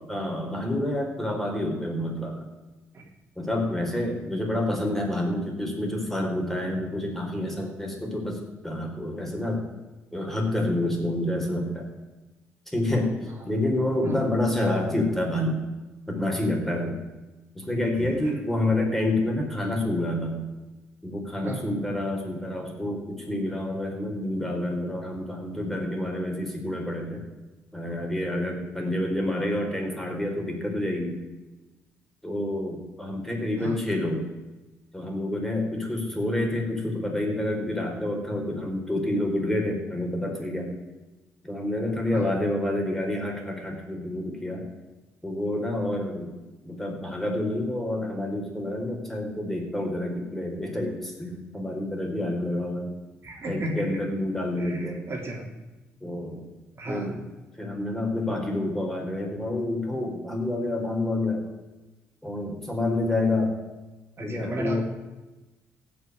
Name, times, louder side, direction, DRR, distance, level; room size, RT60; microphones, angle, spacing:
voice 1, 0.1-2.5 3.4-9.7 10.1-11.9 12.7-15.6 16.1-17.0 17.5-20.4 21.0-27.2 27.7-31.2 32.2-34.3 34.9-40.7 41.4-44.7 45.2-46.3 46.6-52.9 53.5-55.0 56.0-56.4 56.9-57.2 57.5-61.5 62.2-63.6 64.2-64.8, left 1 dB, 5° left, 1 dB, 4.6 m, -28 dB
voice 2, 18.0-18.3 21.4-21.6 33.6-33.8 42.1-42.3 53.2-53.9 54.6-55.4 56.7-57.1 64.2-64.8, right 1 dB, 45° right, 0 dB, 3.2 m, -34 dB
15.5 x 6.2 x 9.8 m, 1.1 s
supercardioid pair, 65°, 6 cm